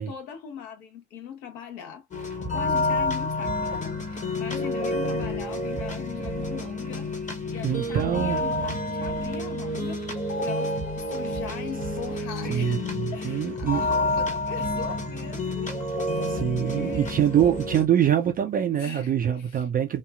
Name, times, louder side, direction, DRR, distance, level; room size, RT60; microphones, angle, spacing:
voice 1, 0.0-7.1 7.4-10.0 10.4-17.3 18.7-19.6, left 8 dB, 80° left, 1.2 m, -40 dB
sound 1, 2.1-17.9, left 1 dB, 15° left, 0.8 m, -29 dB
voice 2, 7.6-8.4 12.4-13.9 16.2-20.0, right 10 dB, 20° right, 0.3 m, -24 dB
2.9 x 2.4 x 2.2 m
hypercardioid pair, 90°, 50 cm